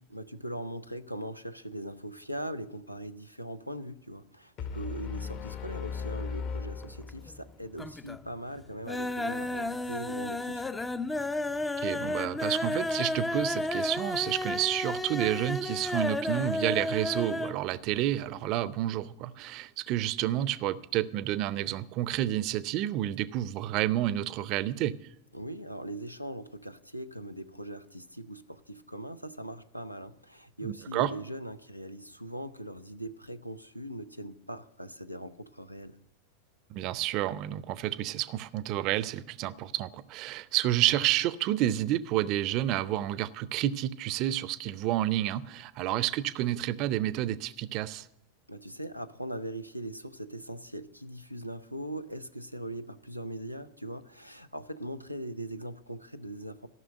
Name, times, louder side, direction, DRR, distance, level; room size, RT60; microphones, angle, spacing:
voice 1, 0.1-10.7 25.3-36.0 48.5-56.7, right 1 dB, 90° left, 0.6 m, -40 dB
sound 1, 4.6-7.6, left 5 dB, 40° left, 0.9 m, -37 dB
sound 2, 6.8-7.4 7.7-8.3 8.6-17.6 17.9-18.0 18.3-18.4, left 2 dB, 10° left, 0.4 m, -32 dB
voice 2, 11.8-24.9 30.6-31.1 36.7-48.1, right 13 dB, 40° right, 0.5 m, -30 dB
14.0 x 6.2 x 9.0 m
figure-of-eight pair, 90°, 0 cm